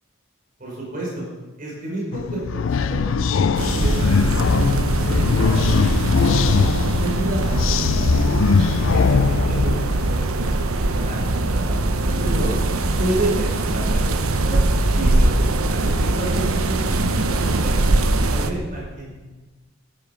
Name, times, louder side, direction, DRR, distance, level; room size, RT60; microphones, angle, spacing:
voice 1, 0.6-1.3 1.6-6.6 7.0-12.5 13.0-14.6 14.9-19.1, right 2 dB, 40° right, -3 dB, 5.3 m, -31 dB
sound 1, 2.1-10.2, left 5 dB, 70° left, 0.4 m, -21 dB
sound 2, 3.6-18.5, right 2 dB, 85° right, 1.0 m, -21 dB
14.0 x 13.0 x 5.3 m, 1.2 s
head